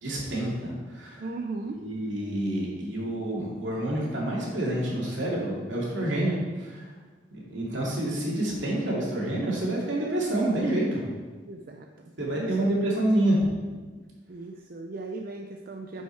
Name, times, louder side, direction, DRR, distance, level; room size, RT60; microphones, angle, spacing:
voice 1, 0.0-1.3 1.8-6.9 7.3-11.0 12.2-13.4, right 1 dB, 75° right, -4 dB, 2.5 m, -28 dB
voice 2, 1.2-1.8 11.5-12.6 14.3-16.0, right 3 dB, 50° right, 3 dB, 0.5 m, -37 dB
9.6 x 5.4 x 4.6 m, 1.4 s
head